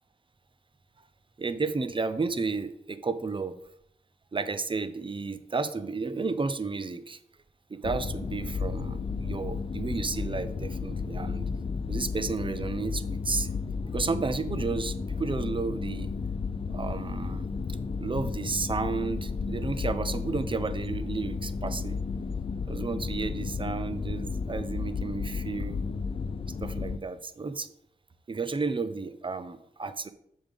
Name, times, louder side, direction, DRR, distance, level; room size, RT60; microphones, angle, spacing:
voice 1, 1.4-3.6 4.3-7.2 7.7-11.5 11.9-13.5 13.9-16.1 16.7-17.5 18.0-22.0 22.7-25.8 26.6-27.7 28.3-30.1, right 4 dB, 30° right, 12 dB, 0.6 m, -32 dB
sound 1, 7.8-27.0, left 4 dB, 35° left, 0.4 m, -33 dB
7.1 x 5.3 x 3.6 m, 0.72 s
cardioid pair, 60°, 16 cm